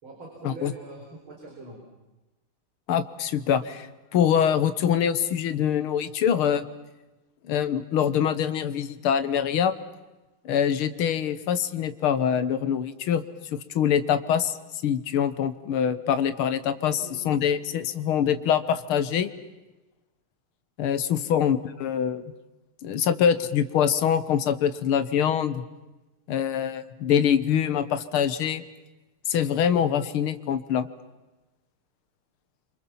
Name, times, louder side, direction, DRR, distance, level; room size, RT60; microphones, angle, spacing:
voice 1, 0.0-1.8 16.7-17.3 17.7-17.9 21.1-21.4, right 2 dB, 70° right, 0 dB, 5.0 m, -44 dB
voice 2, 2.9-6.7 7.5-9.8 10.5-13.2 13.5-14.6 14.8-17.0 17.3-19.3 20.8-22.2 22.8-25.6 26.3-28.6 29.3-30.9, left 8 dB, 80° left, 12 dB, 2.0 m, -24 dB
27.5 x 26.0 x 7.2 m, 1.1 s
omnidirectional pair, 2.4 m